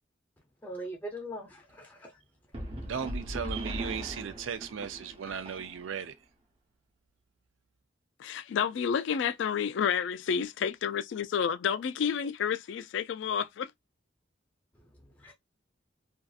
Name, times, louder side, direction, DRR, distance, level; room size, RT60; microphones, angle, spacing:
voice 1, 0.6-2.1 15.2-15.3, equal, 10° left, 0.5 m, -40 dB
sound 1, 2.5-6.1, equal, 30° right, 0.7 m, -39 dB
voice 2, 2.8-6.1, right 7 dB, 85° right, 0.5 m, -36 dB
voice 3, 8.2-13.7, left 7 dB, 70° left, 0.3 m, -30 dB
2.6 x 2.4 x 2.3 m
head